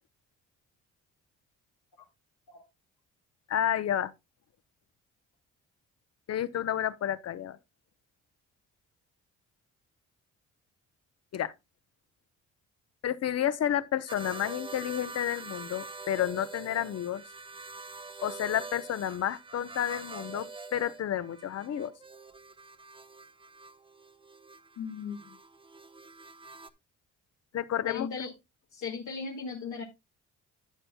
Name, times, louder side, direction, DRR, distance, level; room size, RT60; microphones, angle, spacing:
voice 1, 3.5-4.1 6.3-7.6 11.3-11.5 13.0-17.2 18.2-21.9 27.5-28.1, left 10 dB, 55° left, 0.9 m, -30 dB
sound 1, 14.1-26.7, right 3 dB, 15° right, 0.9 m, -45 dB
voice 2, 24.8-25.3 27.8-28.3 28.7-29.8, left 5 dB, 75° left, 1.8 m, -37 dB
11.5 x 8.9 x 2.2 m
cardioid pair, 90°, 30 cm